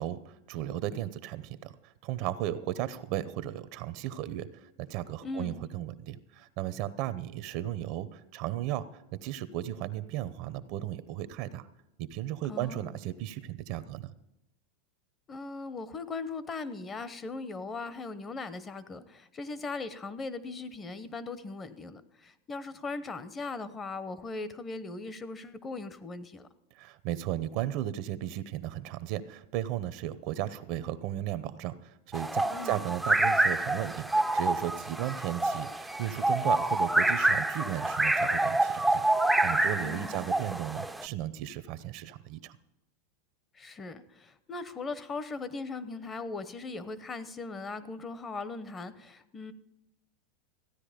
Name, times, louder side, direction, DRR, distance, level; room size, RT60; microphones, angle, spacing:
voice 1, 0.0-4.6 4.9-8.8 9.2-11.7 12.0-14.1 26.8-42.6, right 13 dB, 55° right, 14 dB, 0.7 m, -35 dB
voice 2, 5.2-5.7 12.5-13.0 15.3-26.5 32.5-32.9 39.8-40.3 43.5-49.5, left 3 dB, 20° left, 14 dB, 0.9 m, -39 dB
sound 1, 32.1-41.1, right 2 dB, 5° right, 0.5 m, -27 dB
14.5 x 9.7 x 5.1 m, 0.92 s
supercardioid pair, 125°, 0 cm